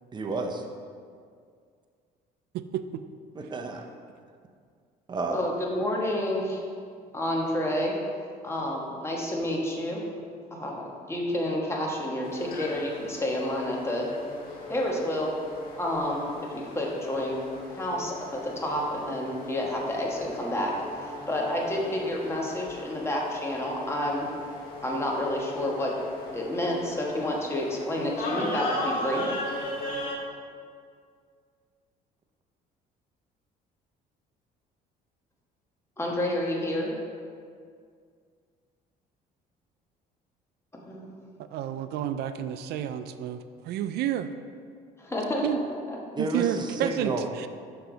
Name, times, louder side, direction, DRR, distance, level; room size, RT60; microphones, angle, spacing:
voice 1, 0.1-0.6 3.4-3.8 5.1-5.5 46.2-47.2, right 3 dB, 25° right, 4 dB, 0.7 m, -31 dB
voice 2, 2.5-3.0 41.5-44.3 45.4-45.6 46.2-47.5, right 10 dB, 75° right, 11 dB, 0.4 m, -30 dB
voice 3, 5.3-6.6 7.1-8.0 8.4-10.0 10.5-14.1 14.7-15.3 15.8-17.4 17.7-24.3 24.8-25.9 26.3-29.3 36.0-36.9 40.7-41.3 45.0-46.0, left 1 dB, 15° left, -2 dB, 1.3 m, -29 dB
sound 1, 12.2-30.1, left 1 dB, 60° left, 1.5 m, -38 dB
6.8 x 5.6 x 3.9 m, 2.1 s
cardioid pair, 110°, 17 cm